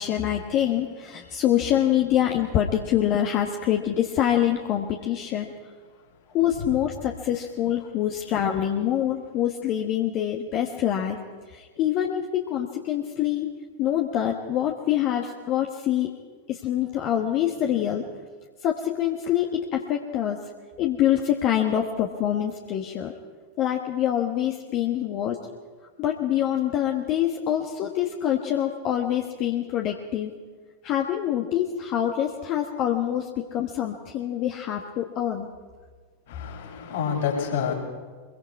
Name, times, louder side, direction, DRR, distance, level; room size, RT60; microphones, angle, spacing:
voice 1, 0.0-5.5 6.3-11.2 11.5-13.5 13.8-16.1 16.5-18.1 18.6-20.4 20.8-23.1 23.6-25.4 26.0-30.3 30.8-35.5, left 11 dB, 40° left, 2 dB, 1.5 m, -25 dB
voice 2, 36.3-37.7, left 7 dB, 60° left, -5 dB, 5.6 m, -28 dB
24.0 x 22.5 x 4.7 m, 1.5 s
figure-of-eight pair, 90°, 0 cm